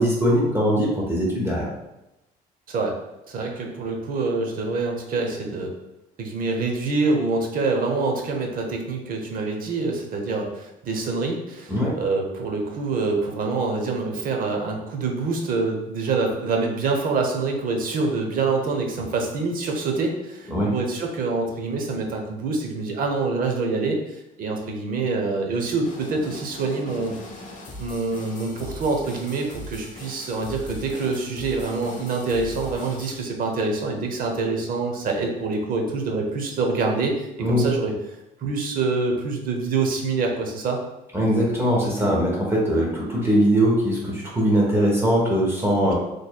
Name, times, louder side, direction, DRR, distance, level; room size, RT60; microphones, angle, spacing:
voice 1, 0.0-1.7 11.7-11.9 20.5-20.7 37.4-37.6 41.1-45.9, equal, 15° right, -4 dB, 1.0 m, -21 dB
voice 2, 3.3-5.7 6.2-27.1 27.8-37.9 38.4-40.8, right 3 dB, 55° right, 2 dB, 0.8 m, -26 dB
sound 1, 25.8-33.2, left 1 dB, 50° left, 1.0 m, -40 dB
4.0 x 3.2 x 2.3 m, 0.93 s
cardioid pair, 110°, 17 cm